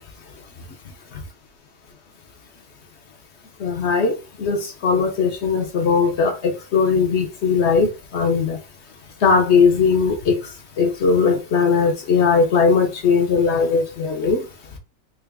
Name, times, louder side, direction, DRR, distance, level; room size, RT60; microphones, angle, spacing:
voice 1, 3.6-8.6 9.2-10.4 10.8-14.4, left 5 dB, 65° left, 0.6 m, -19 dB
3.8 x 2.4 x 3.4 m
omnidirectional pair, 1.9 m